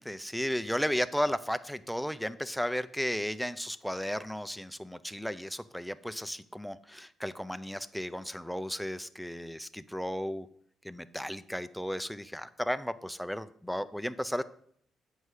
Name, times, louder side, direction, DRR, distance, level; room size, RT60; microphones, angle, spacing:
voice 1, 0.0-10.5 10.8-14.4, equal, ahead, 12 dB, 0.5 m, -34 dB
7.8 x 5.5 x 4.8 m, 0.65 s
cardioid pair, 90°, 0 cm